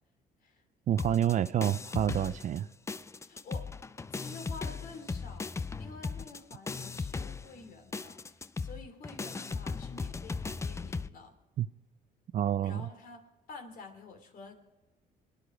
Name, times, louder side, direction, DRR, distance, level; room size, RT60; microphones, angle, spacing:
voice 1, 0.9-2.7 11.6-11.7 12.3-12.8, right 10 dB, 45° right, 0.5 m, -28 dB
sound 1, 1.0-2.6 2.9-11.1, left 4 dB, 15° left, 0.4 m, -37 dB
voice 2, 3.2-3.7 4.1-11.4 12.6-14.5, left 4 dB, 60° left, 2.9 m, -49 dB
24.5 x 10.5 x 5.0 m
cardioid pair, 110°, 17 cm